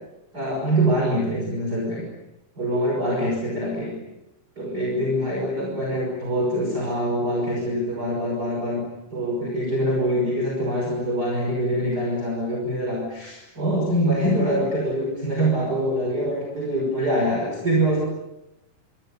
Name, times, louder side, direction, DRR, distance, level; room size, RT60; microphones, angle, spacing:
voice 1, 0.3-2.0 2.6-3.9 4.6-8.8 9.1-18.0, equal, 25° right, -1 dB, 6.2 m, -24 dB
28.0 x 26.0 x 6.9 m, 0.92 s
omnidirectional pair, 4.0 m